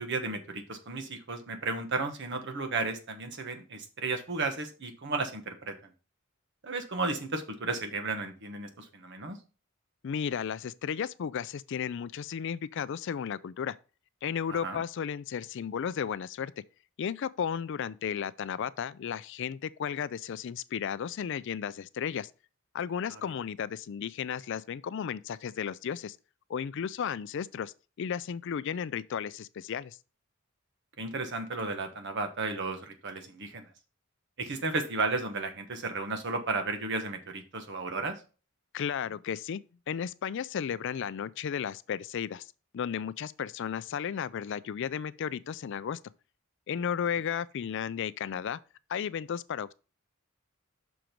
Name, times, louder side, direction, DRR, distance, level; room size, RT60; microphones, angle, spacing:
voice 1, 0.0-5.9 6.6-9.4 14.5-14.8 23.1-23.2 31.0-33.7 34.4-38.2, right 3 dB, 55° right, 1.2 m, -34 dB
voice 2, 10.0-13.8 14.2-16.5 17.0-22.3 22.7-26.2 26.5-30.0 38.7-46.0 46.7-48.6 48.9-49.7, left 7 dB, 60° left, 0.4 m, -34 dB
6.2 x 4.6 x 5.1 m
head